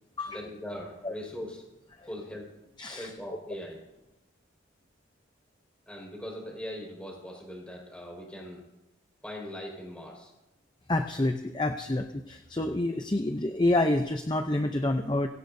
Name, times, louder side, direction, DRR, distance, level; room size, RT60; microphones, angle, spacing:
voice 1, 0.3-1.6 2.0-3.8 5.9-8.6 9.2-10.3, left 1 dB, 5° left, -2 dB, 5.1 m, -41 dB
voice 2, 2.8-3.1 10.9-15.3, left 1 dB, 20° left, 6 dB, 0.6 m, -28 dB
23.5 x 16.5 x 2.7 m, 0.94 s
head